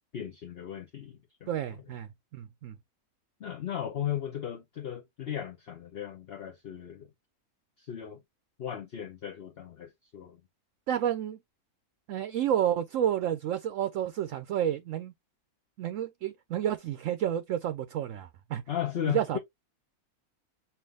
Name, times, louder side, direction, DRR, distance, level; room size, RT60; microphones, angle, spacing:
voice 1, 0.1-1.5 3.4-7.1 7.8-8.2 8.6-10.4 18.7-19.4, left 10 dB, 50° left, 0.9 m, -36 dB
voice 2, 1.5-2.8 10.9-11.4 12.1-15.1 15.8-18.6 19.1-19.4, right 10 dB, 65° right, 0.9 m, -30 dB
5.8 x 2.6 x 3.3 m
omnidirectional pair, 1.6 m